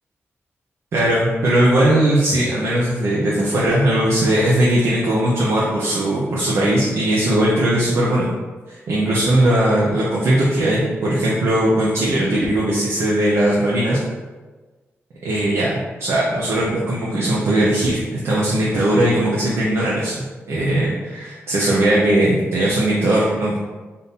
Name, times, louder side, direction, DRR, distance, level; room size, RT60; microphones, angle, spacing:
voice 1, 0.9-8.3 8.7-14.0 15.2-23.6, right 1 dB, 65° right, -6 dB, 0.7 m, -19 dB
3.6 x 2.7 x 4.0 m, 1.3 s
wide cardioid pair, 140°, 5 cm